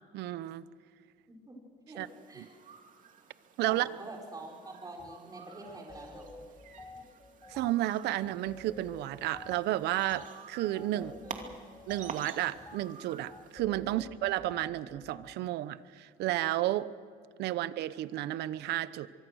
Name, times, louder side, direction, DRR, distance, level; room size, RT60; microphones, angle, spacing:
voice 1, 0.1-0.6 2.0-2.1 3.6-3.9 7.5-11.1 11.9-16.9 17.4-19.1, right 14 dB, 80° right, 16 dB, 0.9 m, -32 dB
voice 2, 1.9-2.5 3.6-6.6 10.9-11.4, right 2 dB, 20° right, 0 dB, 5.7 m, -46 dB
sound 1, 2.0-13.6, right 6 dB, 50° right, 2.6 m, -50 dB
sound 2, 5.0-5.2 5.6-15.4, left 2 dB, 15° left, 1.1 m, -51 dB
24.0 x 24.0 x 6.4 m, 2.1 s
cardioid pair, 110°, 17 cm